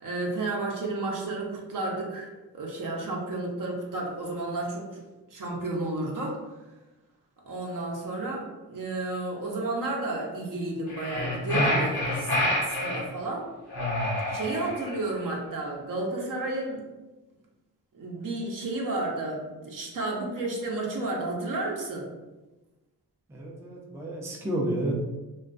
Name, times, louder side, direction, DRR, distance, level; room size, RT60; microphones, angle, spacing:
voice 1, 0.0-2.3 2.5-5.0 5.3-6.4 7.5-13.5 14.3-16.8 17.9-22.1, right 2 dB, 45° right, -2 dB, 0.7 m, -32 dB
sound 1, 10.9-13.1 13.7-15.0, left 1 dB, 60° left, 0.9 m, -27 dB
voice 2, 23.3-25.0, right 1 dB, 5° right, -4 dB, 0.5 m, -31 dB
2.3 x 2.2 x 2.5 m, 1.1 s
cardioid pair, 65°, 43 cm